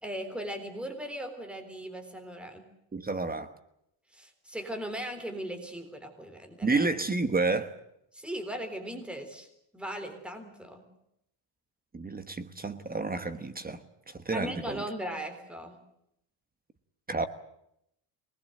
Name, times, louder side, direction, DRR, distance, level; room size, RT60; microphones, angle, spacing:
voice 1, 0.0-2.7 4.1-6.9 8.1-9.5 9.7-10.8 14.3-15.8, equal, ahead, 3.7 m, -38 dB
voice 2, 2.9-3.5 6.6-7.7 11.9-13.8 14.1-14.8 17.1-17.3, right 3 dB, 20° right, 1.3 m, -30 dB
25.0 x 20.5 x 7.9 m
cardioid pair, 145°, 48 cm